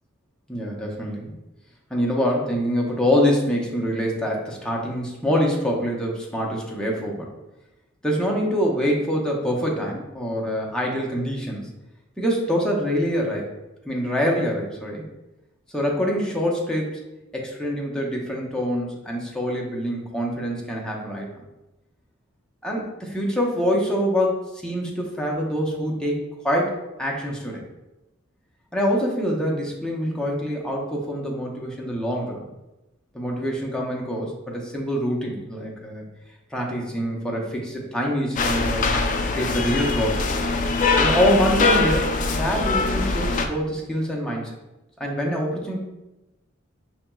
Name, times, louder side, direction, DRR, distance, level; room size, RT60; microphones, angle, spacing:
voice 1, 0.5-1.4 1.9-7.3 8.0-11.7 12.2-13.5 13.9-15.0 15.7-17.0 17.3-21.4 22.6-27.6 28.7-32.5 33.1-36.0 36.5-39.0 39.3-40.3 41.0-44.5 45.0-45.8, equal, 5° left, -3 dB, 0.7 m, -25 dB
sound 1, 38.4-43.5, left 3 dB, 40° left, 0.3 m, -22 dB
5.7 x 2.9 x 2.3 m, 0.98 s
head